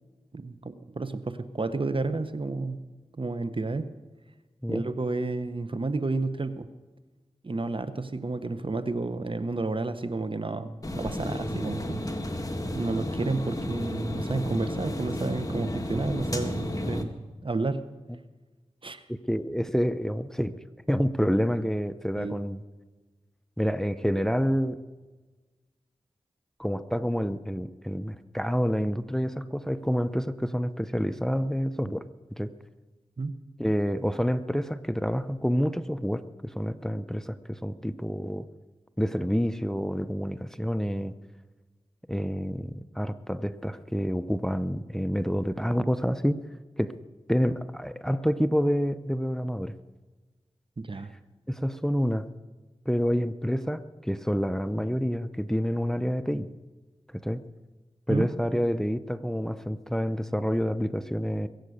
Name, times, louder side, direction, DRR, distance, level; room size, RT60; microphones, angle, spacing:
voice 1, 0.3-2.8 3.1-3.9 4.7-6.7 7.4-12.0 12.7-17.2 17.4-17.8 18.8-19.0 22.2-22.4 33.2-33.4 50.8-51.1 58.1-58.3, right 3 dB, 50° right, 12 dB, 1.0 m, -31 dB
sound 1, 10.8-17.0, left 1 dB, 30° left, 1.8 m, -32 dB
voice 2, 19.1-20.5 20.9-22.6 23.6-24.8 26.6-32.0 32.4-32.5 33.6-38.5 39.0-41.1 42.1-46.4 46.8-47.0 47.3-49.7 51.5-52.3 52.9-56.5 57.1-57.4 58.1-61.5, equal, 5° left, 12 dB, 0.7 m, -28 dB
22.5 x 8.4 x 6.5 m, 1.3 s
cardioid pair, 40°, 12 cm